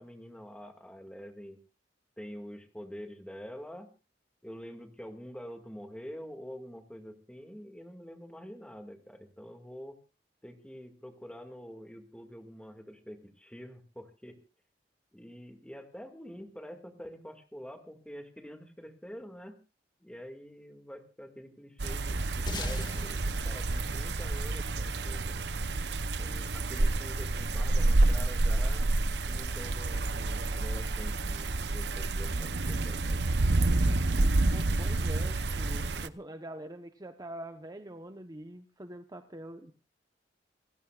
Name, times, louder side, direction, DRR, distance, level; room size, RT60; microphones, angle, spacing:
voice 1, 0.0-1.6 2.2-3.9 4.4-10.0 10.4-14.4 15.1-19.6 20.0-25.4 26.2-28.9 29.3-33.3, equal, 5° left, 5 dB, 2.1 m, -46 dB
sound 1, 21.8-36.1, right 2 dB, 70° right, 0.8 m, -29 dB
sound 2, 22.5-25.2, left 1 dB, 25° left, 1.9 m, -40 dB
voice 2, 34.5-39.7, right 1 dB, 20° right, 7 dB, 0.9 m, -44 dB
28.5 x 16.0 x 2.4 m, 0.33 s
head